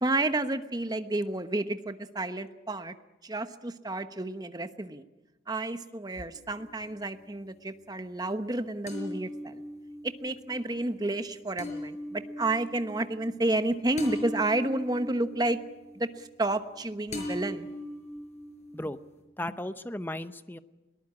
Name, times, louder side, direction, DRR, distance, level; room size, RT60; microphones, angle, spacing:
voice 1, 0.0-2.9 3.2-5.0 5.5-9.6 10.0-15.6 15.9-17.7, right 2 dB, 20° right, 10 dB, 1.0 m, -30 dB
sound 1, 6.3-7.2 8.9-16.8 17.1-19.2, left 1 dB, 40° left, 5.4 m, -40 dB
voice 2, 19.4-20.6, left 1 dB, 10° left, 12 dB, 0.8 m, -35 dB
21.5 x 19.0 x 8.7 m, 1.1 s
head